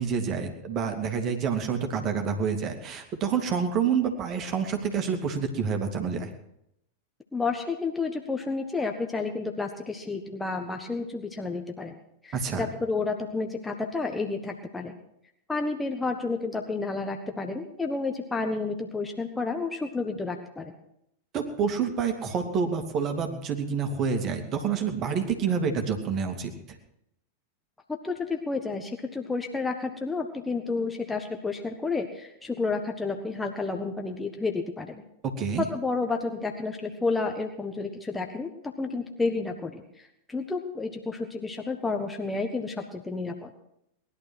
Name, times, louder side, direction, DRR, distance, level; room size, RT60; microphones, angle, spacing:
voice 1, 0.0-6.3 12.3-12.7 21.3-26.5 35.4-35.6, right 6 dB, 35° right, 4 dB, 2.6 m, -28 dB
voice 2, 7.3-11.9 12.2-14.9 15.5-20.7 28.0-35.0 35.6-43.5, left 3 dB, 10° left, 3 dB, 1.4 m, -31 dB
19.5 x 11.5 x 6.1 m, 0.78 s
figure-of-eight pair, 90°, 0 cm